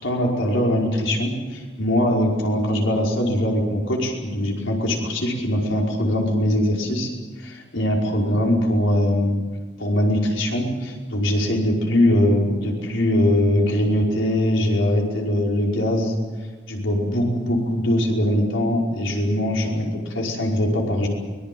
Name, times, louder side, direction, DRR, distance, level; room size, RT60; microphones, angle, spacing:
voice 1, 0.0-7.1 7.4-9.4 9.8-16.1 16.7-21.1, left 1 dB, 80° left, 0 dB, 5.3 m, -21 dB
24.0 x 20.5 x 7.8 m, 1.4 s
head